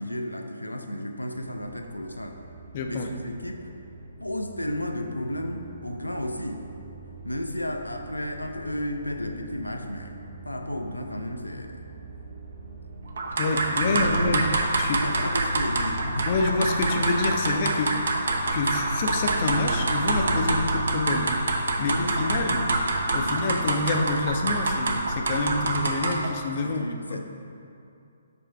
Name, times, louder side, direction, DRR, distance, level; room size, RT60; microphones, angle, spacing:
voice 1, 0.0-2.4 2.9-3.6 4.2-6.7 7.2-10.1 10.4-11.8 13.6-14.4 14.9-16.3 21.8-22.7 23.2-23.6 26.6-27.2, left 1 dB, 85° left, 5 dB, 0.5 m, -33 dB
sound 1, 1.3-16.3, right 2 dB, 40° right, 0.9 m, -44 dB
voice 2, 2.7-3.1 13.4-15.1 16.3-18.0 18.5-21.3 21.8-22.7 23.1-27.2, left 3 dB, 40° left, 4 dB, 0.5 m, -27 dB
sound 2, 13.2-26.3, right 2 dB, 60° right, 0.5 m, -26 dB
6.8 x 3.1 x 4.6 m, 2.5 s
figure-of-eight pair, 135°, 0 cm